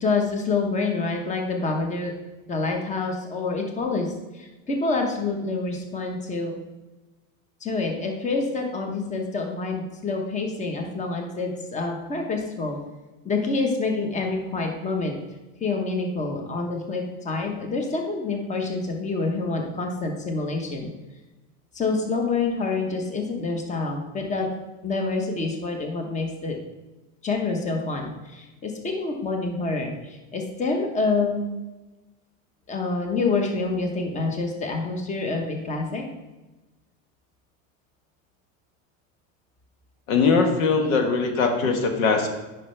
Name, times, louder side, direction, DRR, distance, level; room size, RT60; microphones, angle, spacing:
voice 1, 0.0-2.1 2.5-6.5 7.6-12.8 13.2-15.2 15.6-20.9 21.7-24.5 24.8-26.6 27.2-31.5 32.7-36.0, left 3 dB, 20° left, 3 dB, 1.1 m, -27 dB
voice 2, 40.1-42.3, left 4 dB, 90° left, 5 dB, 1.3 m, -21 dB
9.5 x 5.5 x 3.3 m, 1.1 s
supercardioid pair, 130°, 40 cm